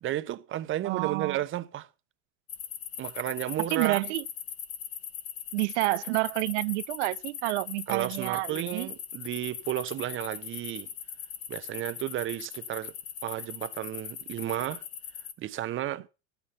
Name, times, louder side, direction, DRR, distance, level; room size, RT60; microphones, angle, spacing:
voice 1, 0.0-1.9 3.0-4.0 7.9-10.9 11.5-12.9 13.2-14.8 15.4-16.0, right 13 dB, 35° right, 0.9 m, -33 dB
voice 2, 0.8-1.4 3.6-4.2 5.5-8.9, right 23 dB, 75° right, 0.5 m, -29 dB
sound 1, 2.5-15.3, left 9 dB, 40° left, 1.6 m, -40 dB
12.5 x 9.0 x 5.6 m
supercardioid pair, 110°, 35 cm